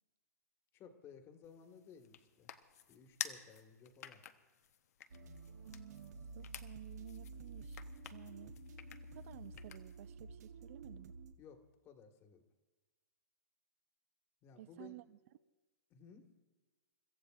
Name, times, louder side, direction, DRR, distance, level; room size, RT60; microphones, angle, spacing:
voice 1, 0.7-2.5 2.9-4.2 6.4-6.5 11.4-12.4 14.4-15.0 15.9-16.3, left 6 dB, 30° left, 1.6 m, -58 dB
sound 1, 1.4-10.1, left 9 dB, 65° left, 0.9 m, -51 dB
sound 2, 5.1-11.3, right 3 dB, 70° right, 1.1 m, -51 dB
voice 2, 5.6-7.8 8.1-8.6 9.1-11.1 14.6-15.2, right 15 dB, 50° right, 0.6 m, -54 dB
29.5 x 14.5 x 2.5 m
hypercardioid pair, 125°, 9 cm